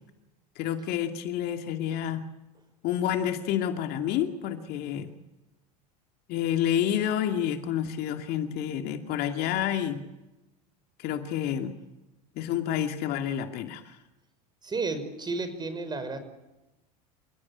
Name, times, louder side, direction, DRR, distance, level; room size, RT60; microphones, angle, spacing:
voice 1, 0.6-2.2 2.8-5.1 6.3-10.0 11.0-11.7 12.4-13.8, left 10 dB, 55° left, 6 dB, 2.4 m, -29 dB
voice 2, 14.6-16.2, right 3 dB, 20° right, 10 dB, 5.6 m, -32 dB
28.5 x 17.5 x 8.6 m, 0.98 s
hypercardioid pair, 90°, 20 cm